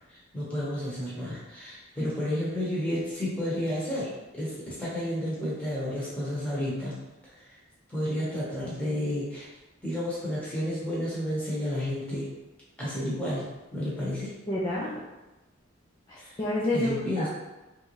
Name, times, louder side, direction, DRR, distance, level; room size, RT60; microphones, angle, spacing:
voice 1, 0.1-7.6 7.9-9.5 9.8-12.3 12.8-13.4 13.7-14.3 16.2-16.4 16.7-17.3, left 1 dB, 5° left, -8 dB, 1.0 m, -31 dB
voice 2, 14.5-14.9 16.1-17.3, left 1 dB, 25° left, -7 dB, 0.4 m, -29 dB
3.4 x 2.6 x 3.1 m, 1.1 s
head